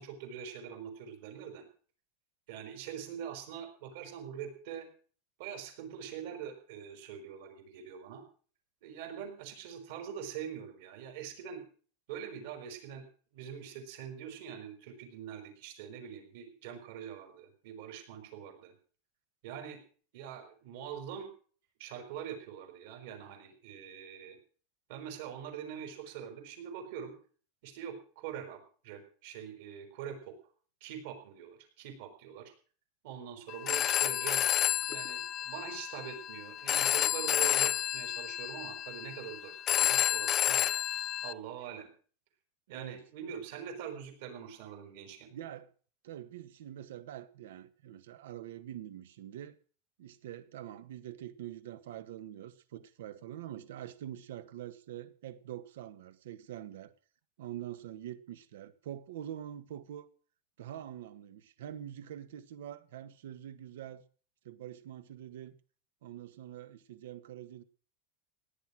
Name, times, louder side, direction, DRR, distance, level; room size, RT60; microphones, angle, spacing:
voice 1, 0.0-1.7 2.5-4.9 5.4-8.2 8.8-11.7 12.1-13.1 13.3-18.7 19.4-19.8 20.1-21.3 21.8-24.4 24.9-27.1 27.6-30.3 30.8-32.5 33.0-34.6 34.9-40.7 41.2-41.9 42.7-45.3, right 8 dB, 55° right, 6 dB, 5.5 m, -44 dB
Telephone, 33.5-41.3, left 12 dB, 25° left, 0.6 m, -30 dB
voice 2, 42.7-43.3 45.3-45.7 46.0-49.6 50.0-56.9 57.4-60.1 60.6-64.0 64.4-65.5 66.0-67.6, right 11 dB, 80° right, 14 dB, 1.5 m, -45 dB
17.5 x 10.5 x 6.3 m, 0.42 s
supercardioid pair, 175°, 0 cm